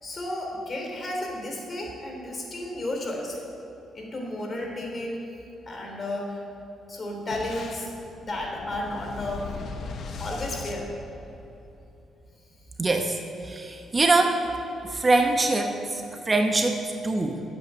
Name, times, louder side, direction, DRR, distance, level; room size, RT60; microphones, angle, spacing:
voice 1, 0.0-3.4 3.9-5.2 5.7-6.4 6.9-7.9 8.2-9.5 10.2-10.9 13.8-13.9, left 1 dB, 35° left, 0 dB, 3.2 m, -33 dB
Boom, 7.3-11.7, left 4 dB, 60° left, 1.0 m, -38 dB
voice 2, 12.8-13.2 13.4-14.4 14.9-17.4, right 2 dB, 25° right, 4 dB, 0.9 m, -23 dB
11.5 x 8.4 x 6.8 m, 2.9 s
cardioid pair, 90°, 0 cm